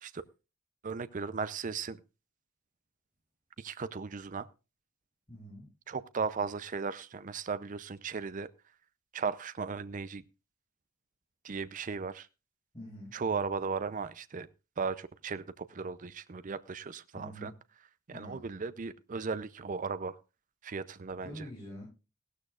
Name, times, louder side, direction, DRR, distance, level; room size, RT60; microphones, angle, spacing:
voice 1, 0.8-2.0 3.6-4.5 5.9-8.5 9.1-10.2 11.4-12.3 13.1-14.5 14.8-17.5 18.1-20.2 20.6-21.5, right 5 dB, 40° right, 14 dB, 0.5 m, -36 dB
voice 2, 5.3-5.7 12.7-13.2 17.1-17.5 18.1-18.4 21.2-21.9, equal, 20° left, -8 dB, 7.7 m, -45 dB
16.5 x 13.0 x 2.4 m, 0.30 s
head